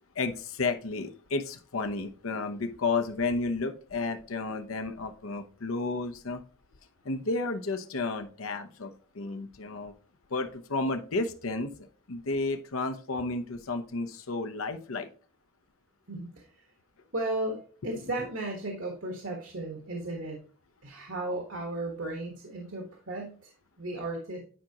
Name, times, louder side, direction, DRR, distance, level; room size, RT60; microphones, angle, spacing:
voice 1, 0.1-6.4 7.0-9.9 10.3-15.1 17.8-18.3, left 3 dB, 90° left, 7 dB, 0.8 m, -32 dB
voice 2, 16.1-16.4 17.1-17.6 17.8-20.4 20.8-23.5 23.8-24.4, right 2 dB, 75° right, 2 dB, 1.5 m, -35 dB
10.0 x 4.9 x 2.9 m, 0.40 s
head